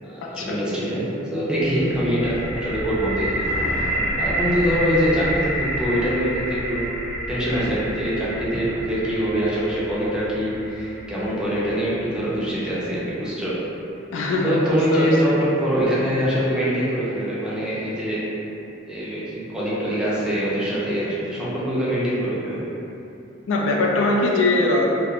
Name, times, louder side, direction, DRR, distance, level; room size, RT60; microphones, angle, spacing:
voice 1, 0.0-1.0 1.3-3.4 3.7-6.9 7.3-13.6 14.4-18.3 18.8-22.7, equal, 5° right, -9 dB, 0.5 m, -24 dB
sound 1, 1.6-13.5, equal, 60° right, 0.6 m, -29 dB
Thunder, 3.4-5.9, equal, 40° left, 1.0 m, -35 dB
voice 2, 14.1-15.4 23.5-24.9, left 2 dB, 80° left, -1 dB, 0.3 m, -21 dB
2.8 x 2.0 x 2.4 m, 2.8 s
head